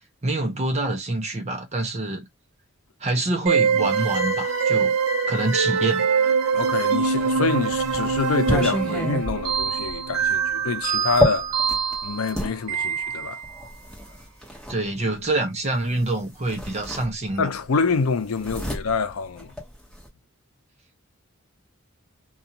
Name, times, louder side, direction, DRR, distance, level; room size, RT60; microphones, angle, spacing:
voice 1, 0.2-2.3 3.0-5.0 5.3-6.1 14.7-17.5, right 2 dB, 35° right, 0.6 m, -26 dB
sound 1, 3.5-13.6, right 6 dB, 80° right, 0.6 m, -24 dB
voice 2, 6.5-11.5 12.0-13.4 17.4-19.5, left 4 dB, 85° left, 0.5 m, -26 dB
sound 2, 7.2-12.5 13.4-14.8 16.0-16.1 16.5-17.6 17.8-20.1, left 1 dB, 5° left, 1.1 m, -29 dB
2.5 x 2.3 x 2.8 m
head